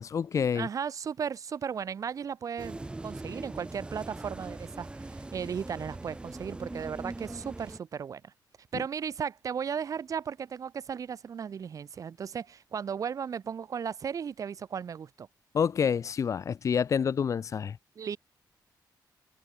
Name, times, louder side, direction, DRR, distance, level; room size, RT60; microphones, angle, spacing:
voice 1, 0.0-0.7 15.5-17.8, left 7 dB, 45° left, 1.6 m, -28 dB
voice 2, 0.5-4.9 5.3-8.3 8.7-15.3 17.9-18.2, right 7 dB, 45° right, 6.7 m, -35 dB
sound 1, 2.6-7.8, right 2 dB, 15° right, 2.1 m, -41 dB
wide cardioid pair, 170°, 8 cm